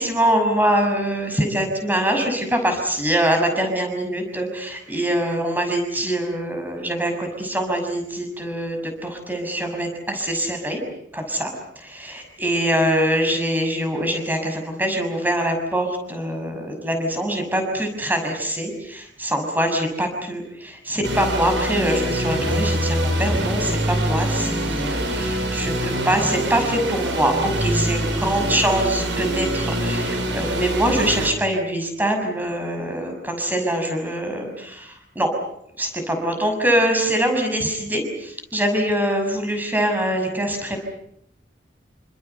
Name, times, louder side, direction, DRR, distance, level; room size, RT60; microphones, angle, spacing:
voice 1, 0.0-10.8 11.1-35.3 35.8-40.8, right 1 dB, 10° right, 5 dB, 6.2 m, -24 dB
sound 1, 21.0-31.3, right 1 dB, 90° right, 6.6 m, -24 dB
28.5 x 26.5 x 6.9 m, 0.74 s
head